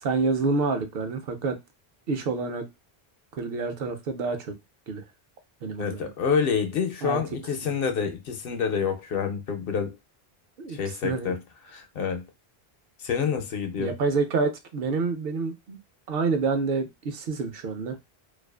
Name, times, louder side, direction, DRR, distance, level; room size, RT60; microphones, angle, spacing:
voice 1, 0.0-1.6 2.1-2.7 3.3-4.5 4.9-5.0 5.6-6.1 7.0-7.2 7.6-7.7 10.6-10.8 11.0-11.3 13.8-15.8 16.1-18.0, right 4 dB, 70° right, 0.8 m, -28 dB
voice 2, 5.8-10.0 10.7-12.3 13.0-13.9, left 6 dB, 70° left, 0.8 m, -28 dB
2.4 x 2.3 x 2.2 m
omnidirectional pair, 1.0 m